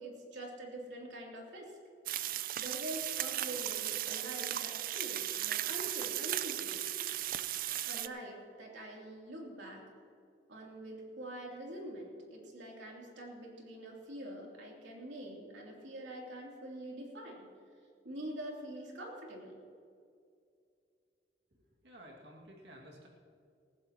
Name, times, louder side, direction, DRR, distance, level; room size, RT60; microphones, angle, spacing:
voice 1, 0.0-1.7 2.5-6.8 7.8-9.8 10.5-17.5 18.0-19.6, right 1 dB, 90° right, -2 dB, 3.0 m, -45 dB
sound 1, 2.1-8.1, right 13 dB, 55° right, 0.4 m, -36 dB
voice 2, 21.8-23.1, equal, 70° right, -1 dB, 2.3 m, -53 dB
19.5 x 15.5 x 3.0 m, 2.4 s
head